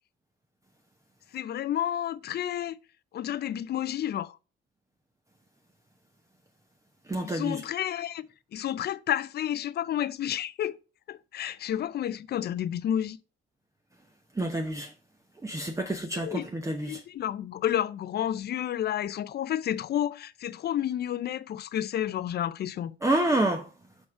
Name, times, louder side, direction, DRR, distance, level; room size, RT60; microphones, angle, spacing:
voice 1, 1.3-2.7 3.1-4.4 7.2-8.2 8.5-10.8 11.1-13.2 16.1-16.5 16.8-22.9, left 11 dB, 55° left, 0.5 m, -30 dB
voice 2, 7.1-7.6 14.4-14.9 15.4-17.0 23.0-23.7, right 1 dB, 15° right, 0.8 m, -28 dB
5.4 x 4.7 x 4.7 m
cardioid pair, 90°, 20 cm